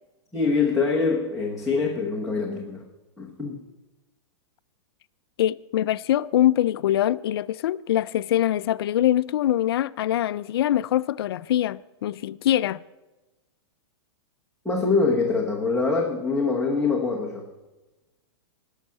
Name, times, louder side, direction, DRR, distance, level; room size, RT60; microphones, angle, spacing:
voice 1, 0.3-2.9 3.2-3.6 14.6-17.5, left 4 dB, ahead, 0.9 m, -24 dB
voice 2, 5.4-12.8, left 12 dB, 60° left, 0.4 m, -23 dB
17.5 x 6.4 x 8.5 m
supercardioid pair, 175°, 14 cm